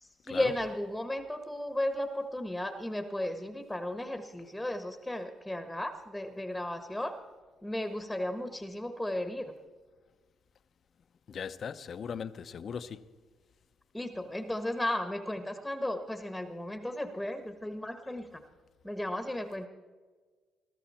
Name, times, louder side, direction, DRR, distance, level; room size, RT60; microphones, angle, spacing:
voice 1, 0.0-7.2 7.6-9.5 13.9-18.3 18.8-19.7, left 1 dB, 5° left, 1.3 m, -35 dB
voice 2, 11.3-13.1, left 7 dB, 55° left, 0.7 m, -39 dB
21.5 x 13.0 x 4.3 m
cardioid pair, 90°, 0 cm